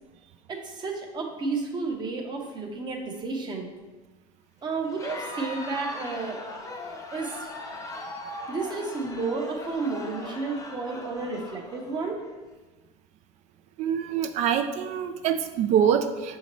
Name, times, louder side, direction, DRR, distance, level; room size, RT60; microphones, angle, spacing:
voice 1, 0.5-3.7 4.6-6.4 7.1-7.5 8.5-12.2, right 3 dB, 30° right, 2 dB, 0.8 m, -31 dB
Crowd, 4.8-12.3, left 1 dB, 20° left, 0.8 m, -39 dB
voice 2, 13.8-16.4, right 8 dB, 45° right, 8 dB, 0.4 m, -25 dB
6.3 x 2.8 x 3.0 m, 1.2 s
supercardioid pair, 110°, 16 cm